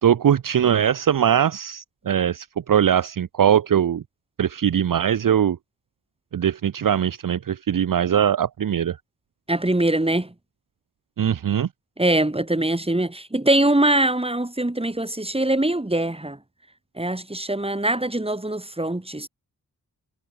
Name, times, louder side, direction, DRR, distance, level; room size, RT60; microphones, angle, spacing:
voice 1, 0.0-4.0 4.4-5.6 6.3-9.0 11.2-11.7, right 9 dB, 55° right, 0.8 m, -21 dB
voice 2, 9.5-10.3 12.0-16.4 17.0-19.3, right 1 dB, 15° right, 3.6 m, -22 dB
cardioid pair, 50°, 38 cm